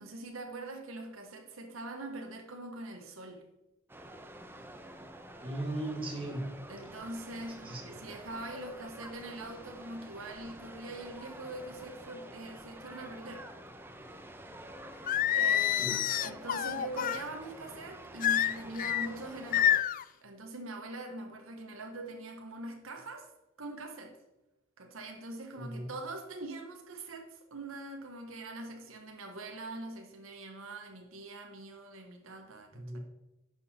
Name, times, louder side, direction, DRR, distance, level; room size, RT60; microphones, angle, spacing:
voice 1, 0.0-3.4 6.7-13.5 14.0-14.3 15.3-19.7 20.2-23.3 23.6-24.2 24.8-33.0, right 2 dB, 85° right, 4 dB, 1.3 m, -43 dB
sound 1, 3.9-19.8, right 1 dB, 10° right, 0.8 m, -49 dB
voice 2, 5.4-6.5 7.6-7.8 15.8-16.0 25.5-25.9 32.7-33.0, right 1 dB, 25° right, 1 dB, 2.2 m, -37 dB
Singing, 15.1-17.2 18.2-19.1 19.5-20.0, left 10 dB, 40° left, 0.3 m, -28 dB
10.5 x 6.4 x 4.3 m, 0.98 s
head